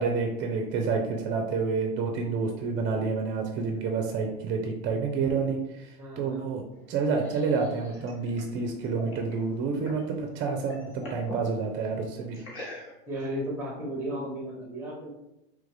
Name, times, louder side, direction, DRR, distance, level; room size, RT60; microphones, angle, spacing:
voice 1, 0.0-6.6 6.9-12.4, right 4 dB, 40° right, 3 dB, 0.5 m, -29 dB
voice 2, 6.0-6.5 13.1-15.1, right 1 dB, 10° right, -2 dB, 0.9 m, -34 dB
sound 1, 6.7-10.1 10.4-11.5 12.3-13.2, left 1 dB, 40° left, 1.1 m, -43 dB
3.3 x 2.4 x 3.3 m, 0.90 s
supercardioid pair, 110°, 29 cm